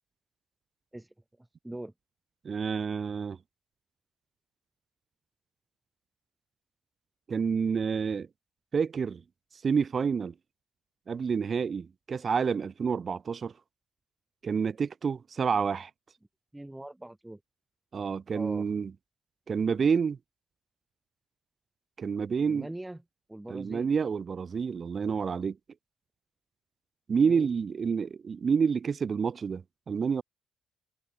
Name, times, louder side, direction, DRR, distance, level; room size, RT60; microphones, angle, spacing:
voice 1, 0.9-1.9 16.5-17.4 18.3-18.7 22.4-23.0 23.3-23.9 27.2-27.5, right 1 dB, 10° right, 6.2 m, -42 dB
voice 2, 2.4-3.4 7.3-8.3 8.7-9.2 9.5-10.3 11.1-13.5 14.4-15.9 17.9-18.9 19.5-20.2 22.0-22.7 23.5-25.6 27.1-30.2, right 6 dB, 45° right, 2.4 m, -28 dB
cardioid pair, 90°, 0 cm